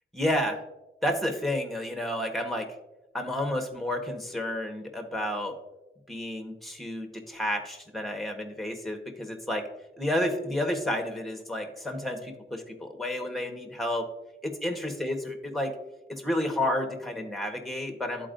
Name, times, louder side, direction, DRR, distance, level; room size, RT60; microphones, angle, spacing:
voice 1, 0.1-0.6 1.0-2.7 3.1-5.5 6.1-9.6 10.0-14.1 14.4-15.7 16.1-18.3, left 1 dB, ahead, 3 dB, 1.3 m, -31 dB
13.0 x 4.5 x 2.6 m, 0.99 s
wide cardioid pair, 95°, 20 cm